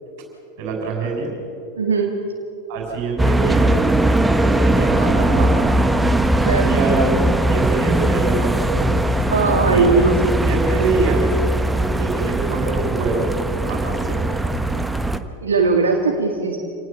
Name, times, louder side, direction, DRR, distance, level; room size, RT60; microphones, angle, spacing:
voice 1, 0.6-1.3 2.7-3.8 4.4-5.6 6.6-7.2 7.5-9.0 9.7-11.3 11.9-13.3 13.7-14.3, right 4 dB, 50° right, 0 dB, 6.6 m, -24 dB
voice 2, 1.8-2.1 6.4-6.7 9.3-10.2 15.4-16.6, right 4 dB, 75° right, 2 dB, 2.0 m, -18 dB
sound 1, 3.2-15.2, right 1 dB, 5° right, 1.2 m, -19 dB
28.0 x 19.0 x 7.5 m, 2.7 s
figure-of-eight pair, 85°, 0 cm